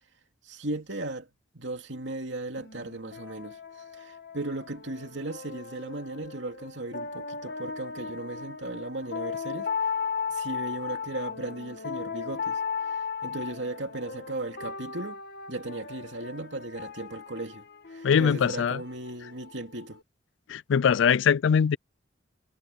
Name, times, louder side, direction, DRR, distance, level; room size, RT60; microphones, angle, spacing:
voice 1, 0.4-1.3 1.5-3.6 3.9-9.9 10.3-12.6 12.9-15.2 15.5-17.6 17.9-20.0, right 2 dB, 70° right, 2.9 m, -36 dB
sound 1, 2.6-20.0, left 5 dB, 60° left, 1.5 m, -37 dB
voice 2, 18.0-18.8 20.5-21.8, left 7 dB, 80° left, 0.4 m, -22 dB
head